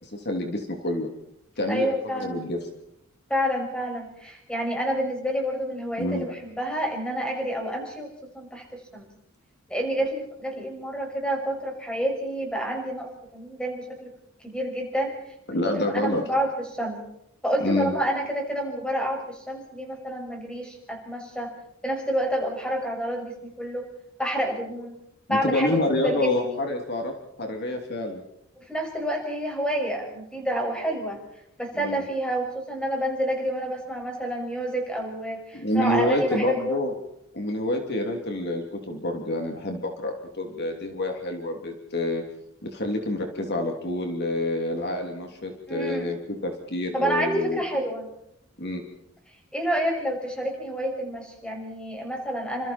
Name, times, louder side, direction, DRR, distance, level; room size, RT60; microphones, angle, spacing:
voice 1, 0.0-1.1 1.6-1.9 2.1-2.6 6.0-6.3 15.5-16.2 17.6-17.9 25.3-27.1 27.4-28.2 31.7-32.0 35.5-36.9 37.3-42.2 42.6-47.6 48.6-48.8, left 1 dB, 55° left, 3 dB, 3.1 m, -27 dB
voice 2, 1.7-2.4 3.3-9.1 9.7-14.1 14.4-15.1 15.5-17.0 17.4-21.5 21.8-23.9 24.2-24.9 25.3-26.6 28.7-31.2 31.6-36.8 45.7-46.0 46.9-48.1 49.5-52.7, equal, 5° left, 1 dB, 6.3 m, -29 dB
29.0 x 27.0 x 4.5 m, 0.80 s
head